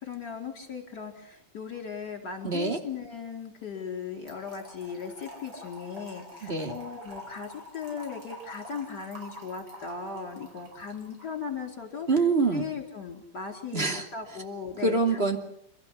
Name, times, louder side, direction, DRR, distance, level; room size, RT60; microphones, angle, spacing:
voice 1, 0.0-12.1 12.5-15.2, left 6 dB, 50° left, 4 dB, 4.8 m, -38 dB
voice 2, 2.4-2.8 6.4-6.7 12.1-12.6 13.7-14.1 14.8-15.4, right 3 dB, 30° right, 5 dB, 2.9 m, -25 dB
Trickle dribble / Fill (with liquid), 4.3-11.4, left 1 dB, 60° right, 6.1 m, -47 dB
29.5 x 14.0 x 10.0 m, 0.75 s
omnidirectional pair, 2.3 m